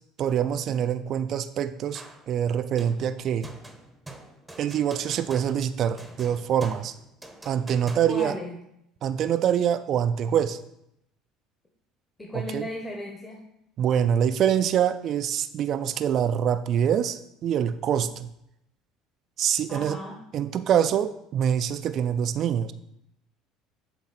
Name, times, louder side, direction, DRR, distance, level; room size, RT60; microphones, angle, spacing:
voice 1, 0.2-3.5 4.6-6.9 7.5-8.3 9.0-10.6 12.3-12.7 13.8-18.3 19.4-20.0 20.3-22.7, right 9 dB, 50° right, 11 dB, 0.3 m, -25 dB
sound 1, 1.9-2.3 2.8-8.5, right 2 dB, 10° right, 0.8 m, -45 dB
voice 2, 8.1-8.5 12.2-13.4 19.7-20.2, left 1 dB, 15° left, -1 dB, 1.1 m, -35 dB
7.3 x 3.6 x 4.2 m, 0.80 s
supercardioid pair, 90°, 0 cm